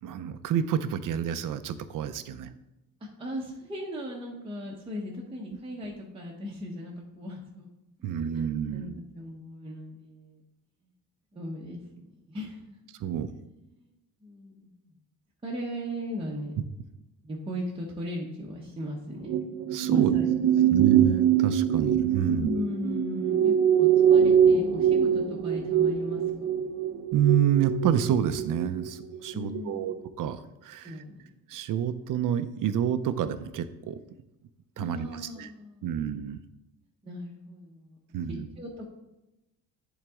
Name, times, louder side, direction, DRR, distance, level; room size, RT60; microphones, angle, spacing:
voice 1, 0.0-2.5 8.0-8.9 13.0-13.3 19.7-20.2 20.7-22.5 27.1-30.9 31.5-34.0 34.8-35.5 35.8-36.4 38.1-38.5, right 9 dB, 55° right, 12 dB, 0.6 m, -28 dB
voice 2, 3.2-7.7 8.3-10.4 11.3-12.8 13.7-13.9 14.2-14.9 15.4-16.5 17.2-19.4 19.9-20.9 22.2-26.7 29.3-29.9 30.8-31.3 34.8-36.1 37.0-38.2 38.6-38.9, left 1 dB, 15° right, -4 dB, 0.8 m, -38 dB
sound 1, 19.3-29.6 29.8-30.1, right 8 dB, 85° right, 0.8 m, -23 dB
10.5 x 4.0 x 3.6 m, 0.95 s
cardioid pair, 155°, 38 cm